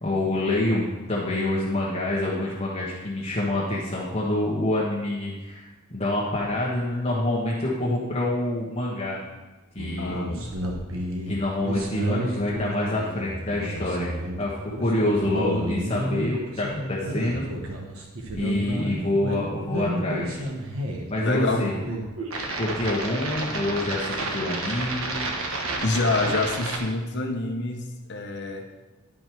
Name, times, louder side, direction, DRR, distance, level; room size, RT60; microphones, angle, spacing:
voice 1, 0.0-9.2 9.7-10.2 11.3-14.1 14.4-17.4 18.3-20.4 21.1-21.7 22.5-25.1, left 1 dB, 30° left, -6 dB, 1.3 m, -26 dB
sound 1, 9.8-26.8, right 1 dB, 75° right, 1.3 m, -31 dB
voice 2, 10.0-10.6 21.2-21.7 25.8-28.7, left 3 dB, 55° left, 3 dB, 0.9 m, -27 dB
11.0 x 5.3 x 4.6 m, 1.1 s
head